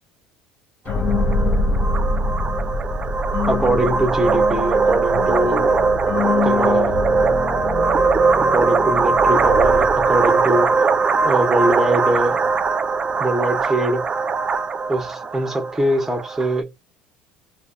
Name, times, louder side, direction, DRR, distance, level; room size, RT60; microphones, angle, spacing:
sound 1, 0.8-10.5, left 3 dB, 45° left, 0.5 m, -25 dB
sound 2, 0.9-16.6, right 4 dB, 30° right, 0.3 m, -20 dB
voice 1, 3.5-5.8 6.4-7.0 8.4-10.7 11.2-12.4 13.2-14.0 14.9-16.7, right 1 dB, 10° right, 0.8 m, -22 dB
2.6 x 2.1 x 2.6 m
supercardioid pair, 105°, 4 cm